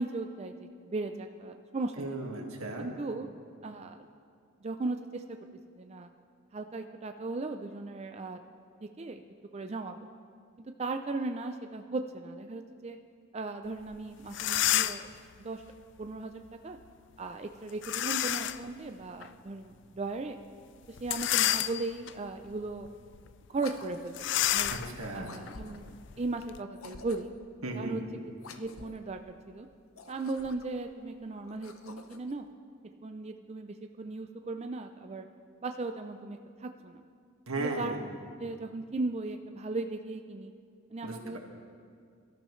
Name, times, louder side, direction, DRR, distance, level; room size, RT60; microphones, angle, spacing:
voice 1, 0.0-2.1 2.8-3.3 3.6-4.1 4.6-5.2 5.8-6.1 6.5-8.4 8.8-9.2 9.5-10.0 10.8-13.0 13.3-15.1 15.4-15.6 16.0-16.8 17.2-20.4 20.9-22.9 23.5-24.7 25.1-27.3 27.8-28.0 28.5-29.7 30.1-32.5 33.0-35.3 35.6-37.0 37.6-37.9 38.4-40.5 40.9-41.4, right 3 dB, 30° right, 6 dB, 0.4 m, -37 dB
voice 2, 2.0-2.9 24.7-25.4 27.6-28.0 37.5-38.0 41.0-41.4, right 2 dB, 85° right, 1 dB, 1.9 m, -36 dB
sound 1, 13.9-14.0 14.3-15.2 17.8-18.7 19.2-19.3 21.0-22.1 22.7-22.9 23.1-23.3 24.1-26.6, left 12 dB, 55° left, 0.4 m, -30 dB
sound 2, 23.5-24.4 25.2-26.0 26.7-27.5 28.4-29.1 29.8-30.8 31.4-32.4, left 4 dB, 80° left, 0.8 m, -49 dB
23.5 x 13.0 x 3.2 m, 2.2 s
head